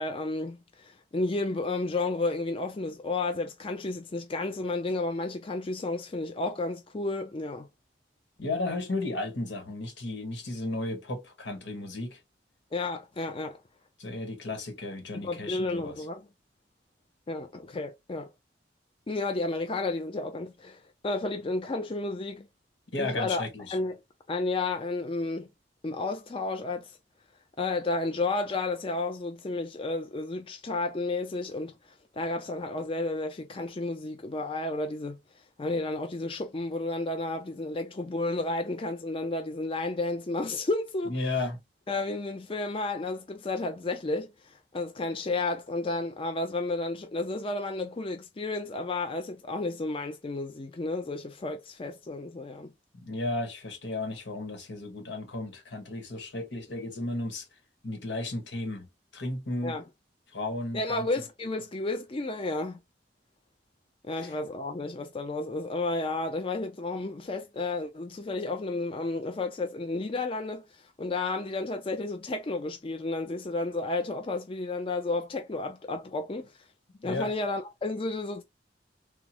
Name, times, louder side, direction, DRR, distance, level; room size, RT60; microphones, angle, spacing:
voice 1, 0.0-7.7 12.7-13.6 15.1-16.3 17.3-18.3 19.1-22.5 23.0-24.0 24.3-25.5 25.8-27.0 27.6-31.8 32.1-35.2 35.6-41.1 41.9-44.3 44.7-52.7 59.6-59.8 60.7-62.8 64.1-70.6 71.0-76.5 77.0-78.4, left 2 dB, 30° left, 0.4 m, -32 dB
voice 2, 8.4-12.2 14.0-16.0 22.9-23.8 41.1-41.6 53.0-57.5 57.8-58.9 59.1-59.7 60.3-61.1 64.2-64.3 77.0-77.3, left 2 dB, 90° left, 1.3 m, -34 dB
3.6 x 2.0 x 2.8 m
head